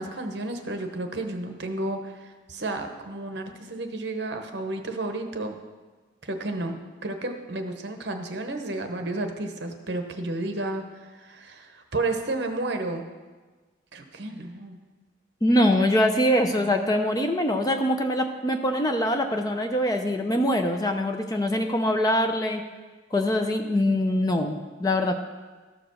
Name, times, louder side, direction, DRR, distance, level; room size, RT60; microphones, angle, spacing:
voice 1, 0.0-5.6 6.2-13.1 13.9-14.8, right 2 dB, 55° right, 5 dB, 0.9 m, -32 dB
voice 2, 15.4-22.6 23.1-25.2, left 1 dB, 20° left, 5 dB, 0.5 m, -23 dB
13.0 x 4.9 x 6.3 m, 1.3 s
head